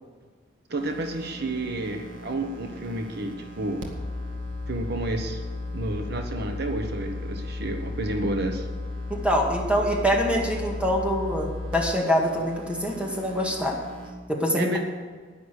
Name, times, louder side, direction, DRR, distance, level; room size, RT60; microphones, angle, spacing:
voice 1, 0.7-3.8 4.7-5.4 5.7-8.7 14.5-14.8, right 1 dB, 60° right, 5 dB, 1.0 m, -30 dB
sound 1, 0.8-14.1, left 2 dB, 80° right, 1.9 m, -35 dB
voice 2, 9.1-13.8 14.3-14.8, equal, 5° right, -1 dB, 2.0 m, -25 dB
11.0 x 10.0 x 6.6 m, 1.5 s
head